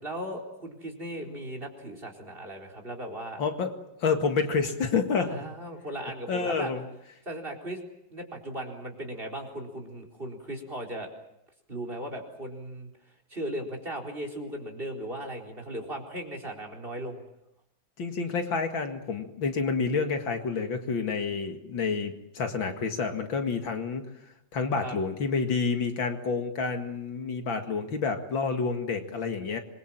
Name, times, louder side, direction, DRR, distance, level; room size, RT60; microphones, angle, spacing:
voice 1, 0.0-3.4 5.2-6.7 7.3-7.8 8.1-11.1 11.7-12.9 13.3-17.2 24.8-24.9, right 1 dB, 25° right, 5 dB, 4.5 m, -37 dB
voice 2, 3.4-3.7 4.0-5.4 6.3-6.8 18.0-24.1 24.5-29.6, left 5 dB, 75° left, 5 dB, 2.8 m, -29 dB
26.5 x 23.0 x 7.6 m, 0.81 s
omnidirectional pair, 2.2 m